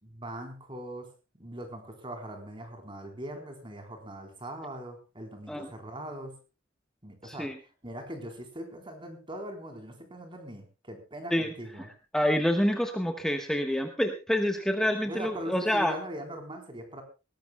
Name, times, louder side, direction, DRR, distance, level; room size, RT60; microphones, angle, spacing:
voice 1, 0.0-1.1 1.4-6.4 7.0-11.9 15.1-17.0, right 1 dB, 25° right, 4 dB, 4.0 m, -41 dB
voice 2, 7.2-7.6 11.3-11.5 12.1-15.9, equal, 5° left, 4 dB, 1.3 m, -27 dB
20.5 x 18.0 x 2.3 m, 0.30 s
head